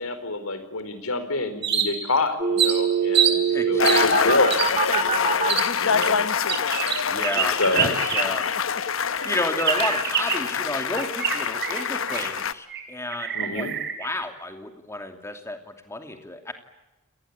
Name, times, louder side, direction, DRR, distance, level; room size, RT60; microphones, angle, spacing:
voice 1, 0.0-3.4 3.7-5.5 5.8-6.2 7.5-7.9 13.3-13.8, left 2 dB, 80° left, 11 dB, 4.3 m, -27 dB
sound 1, 1.6-2.2 2.6-3.4 3.8-4.1 4.5-4.7 5.5-5.7 6.0-8.5 8.8-8.9 9.6-10.5 11.0-12.4 12.7-12.8 13.1-14.1, right 8 dB, 50° right, 4.5 m, -26 dB
sound 2, 2.4-5.5 9.2-10.0, right 7 dB, 30° right, 1.6 m, -24 dB
voice 2, 3.5-4.4 7.1-8.5 9.2-13.7 14.0-16.5, left 1 dB, 15° left, 6 dB, 2.8 m, -31 dB
sound 3, 3.8-12.5, left 6 dB, 65° left, 1.0 m, -25 dB
30.0 x 19.5 x 8.5 m, 1.0 s
head